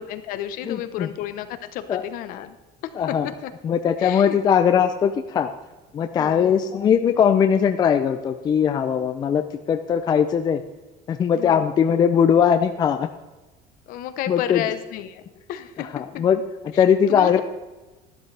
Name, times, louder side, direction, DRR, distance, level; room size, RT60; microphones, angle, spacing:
voice 1, 0.0-2.6 2.8-3.5 4.0-4.4 6.2-6.7 11.4-11.7 13.9-15.2 15.5-16.2 16.7-17.4, left 11 dB, 55° left, 10 dB, 0.9 m, -32 dB
voice 2, 0.7-1.1 1.9-2.0 3.0-3.3 3.6-5.5 5.9-9.4 9.7-10.6 11.1-13.1 14.3-14.6 15.9-16.4 16.8-17.4, left 8 dB, 25° left, 8 dB, 0.4 m, -20 dB
12.5 x 12.0 x 3.4 m, 1.1 s
cardioid pair, 170°, 17 cm